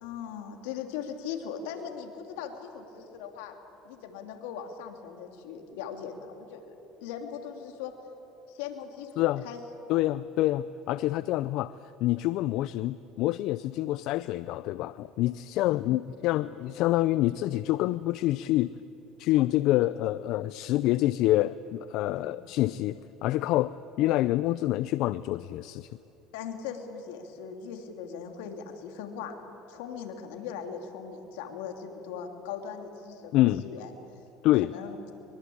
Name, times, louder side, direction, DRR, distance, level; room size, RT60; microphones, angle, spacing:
voice 1, 0.0-3.6 3.8-6.7 7.0-7.9 8.5-9.1 9.4-9.6 9.9-10.0 15.7-15.8 22.0-22.3 26.3-29.3 29.7-33.3 33.6-33.9 34.6-35.0, left 7 dB, 85° left, 5 dB, 2.9 m, -39 dB
voice 2, 9.9-11.7 12.0-18.7 19.2-25.9 33.3-33.6 34.4-34.7, left 16 dB, 65° left, 16 dB, 0.5 m, -27 dB
23.5 x 23.0 x 8.7 m, 2.9 s
supercardioid pair, 110°, 0 cm